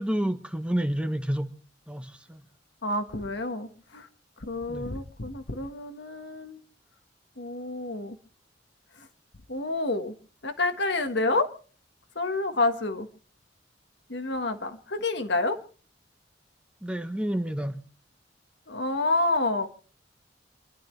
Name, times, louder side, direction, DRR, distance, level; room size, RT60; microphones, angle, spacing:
voice 1, 0.0-1.5 1.9-2.4 4.7-4.9 16.8-17.8, equal, 5° right, 0.9 m, -29 dB
voice 2, 2.8-4.1 4.5-6.6 7.4-8.2 9.5-10.1 10.4-11.5 12.1-13.1 14.1-15.6 18.7-19.7, left 2 dB, 65° left, 1.4 m, -28 dB
28.0 x 11.5 x 3.3 m
head